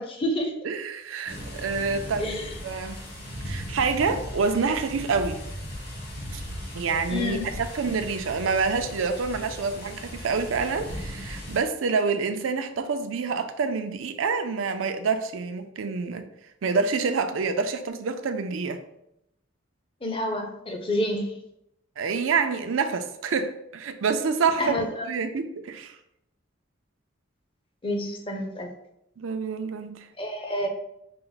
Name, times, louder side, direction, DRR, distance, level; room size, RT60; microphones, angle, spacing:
voice 1, 0.0-0.5 2.2-2.5 7.1-7.5 20.0-21.3 24.6-25.1 27.8-28.7 30.2-30.7, left 1 dB, 25° left, 3 dB, 0.5 m, -28 dB
voice 2, 0.6-2.4 2.6-3.0 3.5-5.4 6.3-6.4 6.7-16.2 16.6-18.8 22.0-24.8 25.0-25.9 29.2-30.0, right 5 dB, 80° right, 8 dB, 0.4 m, -27 dB
sound 1, 1.3-11.6, equal, 50° left, 1.3 m, -37 dB
5.6 x 2.1 x 3.9 m, 0.80 s
head